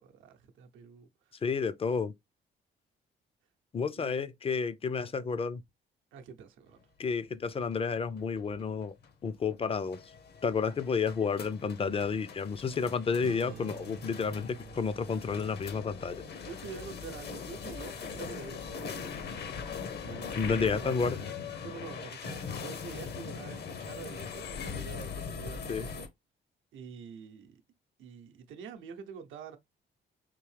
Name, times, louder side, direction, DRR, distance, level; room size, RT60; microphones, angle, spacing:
voice 1, 0.0-1.4 3.9-4.2 6.1-6.8 16.2-21.1 21.6-26.1 26.7-27.6 28.0-29.6, right 6 dB, 85° right, 0.7 m, -47 dB
voice 2, 1.4-2.1 3.7-5.6 7.0-8.9 9.2-10.0 10.4-16.2 20.3-21.2 25.7-25.8, left 5 dB, 30° left, 0.4 m, -31 dB
sound 1, 7.7-26.1, left 6 dB, 55° left, 0.7 m, -41 dB
sound 2, 13.2-19.8, right 8 dB, 50° right, 0.5 m, -51 dB
3.7 x 2.7 x 3.1 m
cardioid pair, 90°, 20 cm